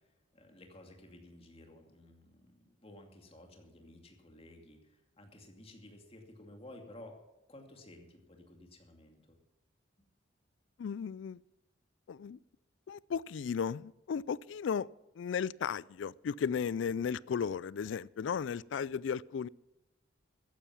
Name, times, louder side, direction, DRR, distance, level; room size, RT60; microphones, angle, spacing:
voice 1, 0.3-7.1 7.5-9.4, left 1 dB, 30° left, 3 dB, 2.4 m, -54 dB
voice 2, 10.8-11.4 12.1-12.4 12.9-14.9 15.2-19.5, left 6 dB, 70° left, 23 dB, 0.3 m, -35 dB
14.0 x 10.5 x 5.9 m, 1.0 s
head